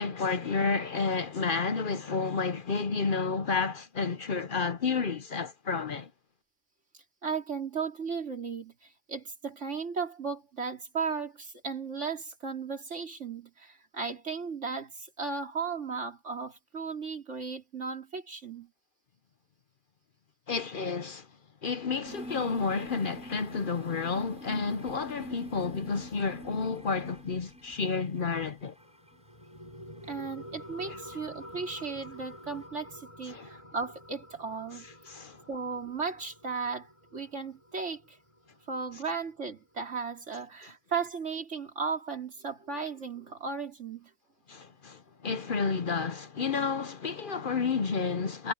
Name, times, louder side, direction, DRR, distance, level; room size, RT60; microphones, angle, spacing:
voice 1, 0.0-6.1 20.5-21.3 21.6-28.7 30.9-31.0 33.3-33.5 35.1-35.4 44.5-48.5, left 4 dB, 50° left, 0.9 m, -31 dB
voice 2, 7.2-18.7 30.1-34.8 35.5-38.2 38.7-44.1, right 5 dB, 75° right, 3.4 m, -36 dB
sound 1, 22.0-28.5 28.8-29.3 30.1-30.2 31.0-31.1 31.7-31.9, right 1 dB, 5° right, 6.9 m, -46 dB
sound 2, 28.8-39.8, equal, 25° left, 5.8 m, -49 dB
omnidirectional pair, 1.2 m